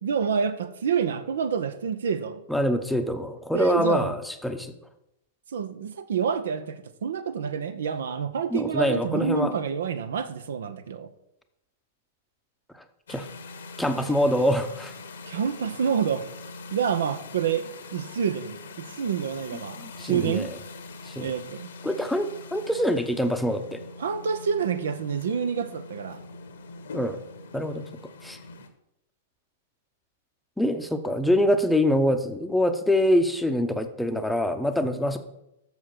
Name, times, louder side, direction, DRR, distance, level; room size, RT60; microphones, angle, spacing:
voice 1, 0.0-2.4 3.5-4.1 5.5-11.1 15.3-16.3 16.7-20.5 21.2-21.7 24.0-26.2 34.8-34.9, right 7 dB, 65° right, 0.6 m, -28 dB
voice 2, 2.5-4.7 8.5-9.5 12.7-12.8 13.1-13.3 13.8-14.9 19.8-20.5 21.1-21.3 21.8-23.8 26.9-27.2 27.5-27.8 28.2-28.4 30.6-35.2, left 1 dB, 5° left, 0.8 m, -25 dB
sound 1, 13.1-28.7, left 3 dB, 65° left, 1.1 m, -43 dB
7.1 x 6.6 x 5.9 m
figure-of-eight pair, 100°, 0 cm